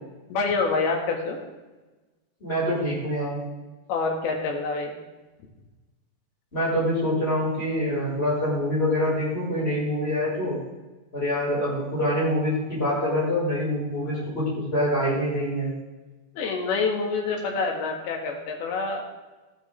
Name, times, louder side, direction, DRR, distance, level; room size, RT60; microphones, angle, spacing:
voice 1, 0.3-1.4 3.9-4.9 16.4-19.0, left 4 dB, 85° left, 1 dB, 3.6 m, -26 dB
voice 2, 2.4-3.4 6.5-10.6 11.1-15.7, equal, 15° left, -5 dB, 4.5 m, -25 dB
14.0 x 9.9 x 3.3 m, 1.2 s
omnidirectional pair, 4.3 m